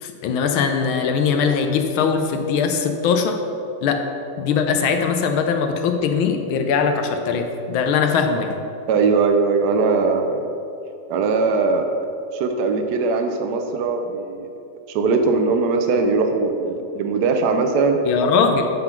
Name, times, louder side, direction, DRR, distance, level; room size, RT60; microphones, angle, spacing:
voice 1, 0.0-3.4 3.8-4.1 4.4-8.6 18.1-18.7, left 6 dB, 75° left, 5 dB, 1.4 m, -21 dB
voice 2, 8.9-10.4 11.1-11.9 12.3-14.5 14.9-18.0, right 4 dB, 75° right, 5 dB, 0.9 m, -20 dB
9.0 x 3.9 x 5.8 m, 2.7 s
omnidirectional pair, 2.4 m